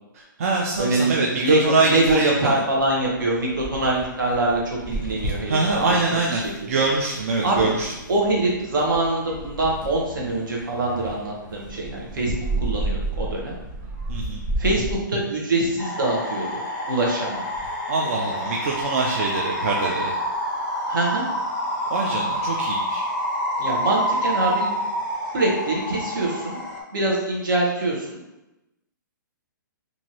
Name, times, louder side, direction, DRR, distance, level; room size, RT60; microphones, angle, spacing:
voice 1, 0.1-2.6 5.5-7.9 14.1-14.4 17.9-20.1 21.9-23.1, right 3 dB, 45° right, -1 dB, 0.3 m, -24 dB
voice 2, 0.8-5.6 5.9-6.8 7.4-7.7 8.1-13.5 14.6-16.6 16.9-17.5 20.9-21.2 23.6-24.7 25.3-26.6 26.9-28.2, right 2 dB, 70° right, -2 dB, 1.0 m, -24 dB
sound 1, 2.7-15.0, right 2 dB, 30° right, 0.8 m, -33 dB
sound 2, 15.8-26.8, equal, 15° left, 0.5 m, -27 dB
2.9 x 2.6 x 2.7 m, 0.97 s
hypercardioid pair, 170°, 11 cm